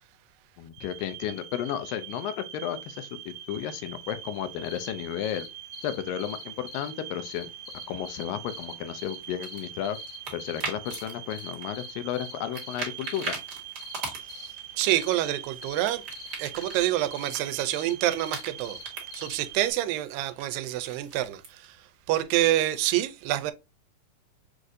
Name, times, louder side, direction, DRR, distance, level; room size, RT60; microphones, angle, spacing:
voice 1, 0.6-5.5 5.8-7.5 7.9-10.0 10.3-13.4, left 10 dB, 85° left, 2.3 m, -33 dB
sound 1, 0.7-19.7, right 11 dB, 65° right, 1.9 m, -43 dB
sound 2, 4.6-4.9 5.2-5.5 5.7-6.9 7.3-9.2 9.4-9.7 9.9-10.6 10.9-11.0 11.3-11.5 11.7-12.8 13.0-13.3 13.8-14.0 14.3-14.5 14.9-15.1 15.6-15.8 16.1-16.3 16.6-16.8 17.1-17.3 17.7-18.8 19.1-19.3, left 9 dB, 70° left, 2.0 m, -44 dB
sound 3, 9.2-11.1 11.4-12.3 12.5-14.6 14.9-17.7 18.0-19.3 20.4-21.6, right 4 dB, 50° right, 1.3 m, -39 dB
voice 2, 14.3-16.0 16.4-18.8 19.1-21.8 22.1-23.5, right 14 dB, 90° right, 2.3 m, -27 dB
6.3 x 2.5 x 2.6 m
omnidirectional pair, 3.9 m